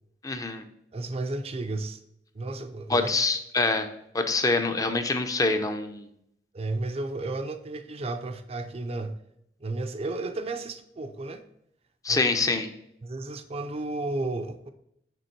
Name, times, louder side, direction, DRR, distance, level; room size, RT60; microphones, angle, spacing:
voice 1, 0.2-0.6 2.9-3.9 4.1-6.1 12.0-12.7, left 3 dB, 20° left, 7 dB, 0.6 m, -25 dB
voice 2, 0.9-2.0 2.3-3.1 6.5-9.2 9.6-11.4 12.1-12.3 13.0-14.7, right 2 dB, 35° right, 9 dB, 0.5 m, -33 dB
6.9 x 3.6 x 4.5 m, 0.75 s
head